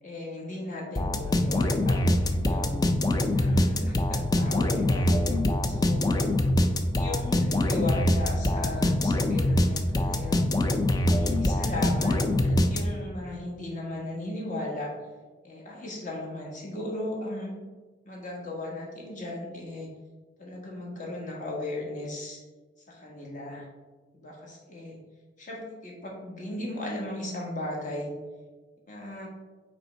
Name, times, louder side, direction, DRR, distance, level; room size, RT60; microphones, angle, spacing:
voice 1, 0.0-2.9 3.3-5.1 5.6-6.2 7.0-10.4 10.9-14.9 15.4-17.6 18.0-19.9 20.4-22.4 22.9-23.7 24.1-25.0 25.4-28.1 28.9-29.3, left 1 dB, 45° left, -1 dB, 1.4 m, -36 dB
sound 1, 0.9-13.2, left 1 dB, 20° left, 0.4 m, -24 dB
5.4 x 4.4 x 4.3 m, 1.3 s
head